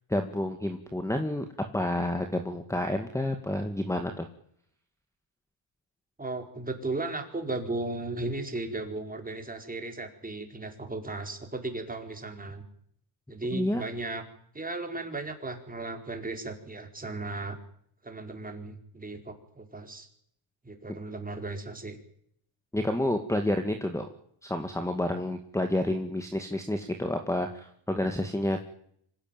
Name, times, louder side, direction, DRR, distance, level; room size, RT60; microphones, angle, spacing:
voice 1, 0.1-1.5 1.7-4.3 13.5-13.8 22.7-24.1 24.4-28.6, left 1 dB, 5° left, 6 dB, 2.1 m, -29 dB
voice 2, 6.2-12.6 13.3-14.2 14.5-17.6 18.0-20.1 20.6-22.0, right 2 dB, 15° right, 4 dB, 4.7 m, -36 dB
25.5 x 17.0 x 9.2 m, 0.67 s
cardioid pair, 125°, 49 cm